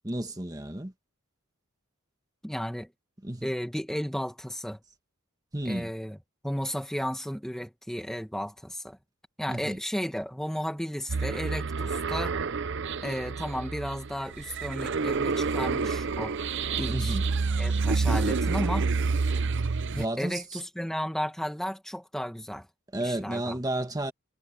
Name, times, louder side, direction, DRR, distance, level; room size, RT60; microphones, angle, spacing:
voice 1, 0.0-0.9 3.2-3.5 5.5-5.9 9.5-9.8 16.9-17.3 19.9-20.6 22.9-24.1, right 1 dB, 15° right, 1.6 m, -32 dB
voice 2, 2.4-2.9 3.4-4.8 5.6-6.2 6.4-9.0 9.4-12.3 13.0-16.3 16.8-17.2 17.6-18.9 19.9-22.7 23.0-23.6, equal, ahead, 1.5 m, -33 dB
sound 1, 11.1-20.1, right 4 dB, 55° right, 0.6 m, -28 dB
head